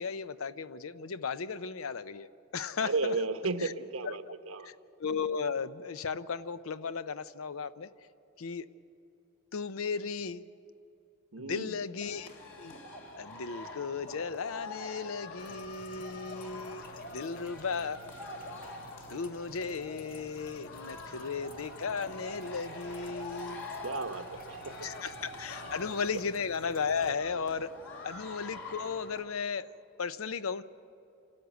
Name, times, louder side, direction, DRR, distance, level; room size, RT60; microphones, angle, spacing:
voice 1, 0.0-2.3 2.5-3.1 3.6-3.7 4.6-4.7 5.0-7.9 8.4-8.7 9.5-10.5 11.4-12.3 12.6-12.7 13.2-18.0 19.1-23.7 24.8-27.8 28.0-29.7 30.0-30.6, left 5 dB, 80° left, 14 dB, 0.6 m, -35 dB
voice 2, 2.8-4.7 11.3-11.8 23.8-24.7, right 3 dB, 90° right, 8 dB, 1.1 m, -34 dB
sound 1, 12.0-29.2, left 2 dB, 65° left, 3.1 m, -45 dB
sound 2, 15.4-27.1, equal, 45° left, 1.1 m, -55 dB
28.0 x 13.0 x 8.2 m, 2.8 s
head